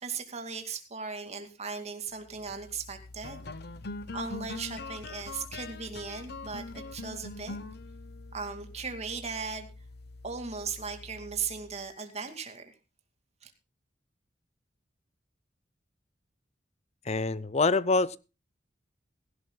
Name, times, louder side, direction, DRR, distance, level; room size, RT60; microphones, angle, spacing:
voice 1, 0.0-3.4 4.1-7.6 8.3-9.7 10.2-12.6 13.4-13.5, right 5 dB, 35° right, 2.3 m, -37 dB
sound 1, 2.3-11.9, left 3 dB, 60° left, 0.9 m, -43 dB
voice 2, 17.1-18.2, left 3 dB, 35° left, 0.6 m, -25 dB
17.0 x 16.0 x 2.3 m
head